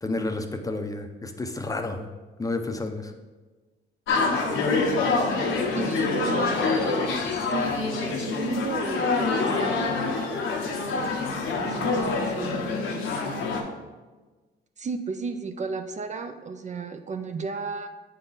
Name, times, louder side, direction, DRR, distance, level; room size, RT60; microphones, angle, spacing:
voice 1, 0.0-2.0 2.4-3.1, left 2 dB, 15° left, 5 dB, 0.6 m, -30 dB
sound 1, 4.1-13.6, left 3 dB, 80° left, 1.0 m, -26 dB
voice 2, 5.8-6.6 7.3-9.9 11.6-13.1 14.8-17.9, right 4 dB, 35° right, 7 dB, 0.5 m, -34 dB
7.9 x 3.8 x 3.9 m, 1.3 s
cardioid pair, 90°, 20 cm